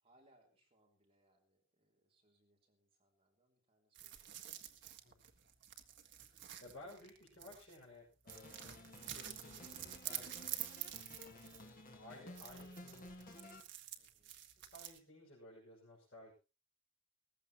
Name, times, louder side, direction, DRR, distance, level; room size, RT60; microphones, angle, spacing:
voice 1, 0.0-4.8 14.0-14.4, right 1 dB, 25° right, 0 dB, 3.4 m, -74 dB
sound 1, 3.9-7.8 8.3-11.8 12.3-15.0, right 12 dB, 50° right, 1.5 m, -48 dB
voice 2, 6.6-10.4 11.1-11.6 12.0-13.6 14.6-16.3, left 1 dB, 55° left, -5 dB, 6.1 m, -57 dB
sound 2, 8.3-13.6, left 1 dB, 40° left, 1.7 m, -55 dB
19.5 x 15.0 x 3.0 m, 0.30 s
head